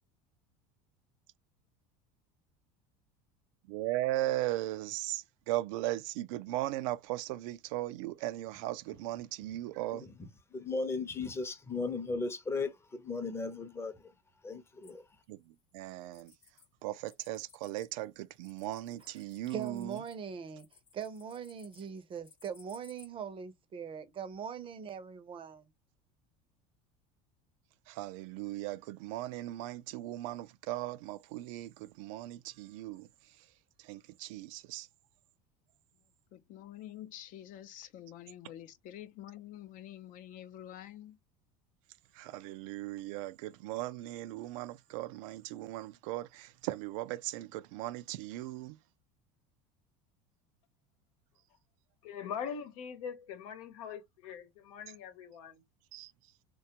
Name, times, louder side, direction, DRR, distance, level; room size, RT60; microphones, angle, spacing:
voice 1, 3.7-10.1 15.3-16.3 16.8-20.0 27.9-33.5 33.8-34.9 42.1-48.8 55.9-56.1, right 16 dB, 80° right, 0.4 m, -38 dB
voice 2, 10.5-14.1 14.4-15.2, left 3 dB, 15° left, 0.7 m, -36 dB
sound 1, 14.8-16.7 17.0-23.1, left 6 dB, 35° left, 1.0 m, -62 dB
voice 3, 19.5-20.7 20.9-25.7, right 7 dB, 30° right, 0.6 m, -41 dB
voice 4, 36.3-41.2, left 12 dB, 50° left, 0.5 m, -48 dB
voice 5, 52.0-55.6, left 7 dB, 85° left, 1.0 m, -42 dB
3.2 x 2.2 x 2.8 m
supercardioid pair, 120°, 17 cm